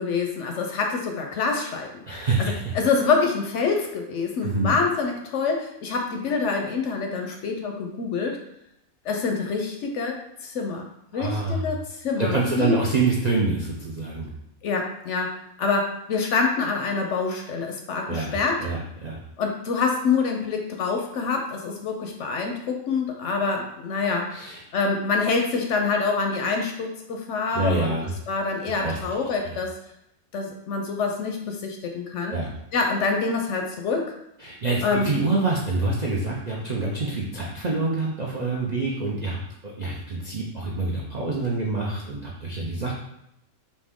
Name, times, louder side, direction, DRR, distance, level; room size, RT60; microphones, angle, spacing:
voice 1, 0.0-1.9 2.4-8.4 9.0-10.9 11.1-12.8 14.6-18.7 19.4-24.3 24.7-27.9 28.3-29.8 30.3-32.3 32.7-34.1 34.8-35.1, left 4 dB, 65° left, 2 dB, 0.8 m, -26 dB
voice 2, 2.1-2.7 4.4-4.7 11.1-11.7 12.2-14.3 18.1-19.2 24.3-24.6 27.5-28.2 28.8-29.0 29.4-29.6 32.3-32.5 34.4-39.4 39.6-42.9, right 3 dB, 60° right, -3 dB, 0.4 m, -26 dB
4.2 x 2.8 x 3.6 m, 0.81 s
omnidirectional pair, 1.5 m